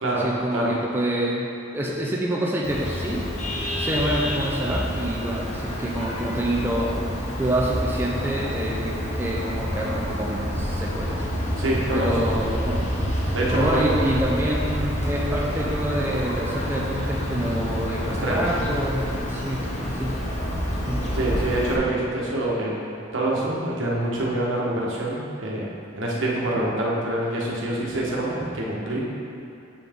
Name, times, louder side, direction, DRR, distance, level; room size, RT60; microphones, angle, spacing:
voice 1, 0.0-1.5 1.7-3.2 3.8-6.9 7.4-11.3 11.9-12.8 13.1-19.0 19.3-20.2 20.9-21.0, right 1 dB, 10° right, -4 dB, 0.6 m, -27 dB
Vehicle horn car horn honking, 2.6-21.8, equal, 35° left, 1.0 m, -28 dB
voice 2, 11.6-12.3 13.3-14.1 18.2-18.4 21.1-25.7 25.9-29.0, right 1 dB, 70° right, -4 dB, 1.3 m, -26 dB
sound 1, 18.4-19.8, left 1 dB, 75° left, 1.3 m, -43 dB
7.6 x 5.8 x 3.6 m, 2.7 s
head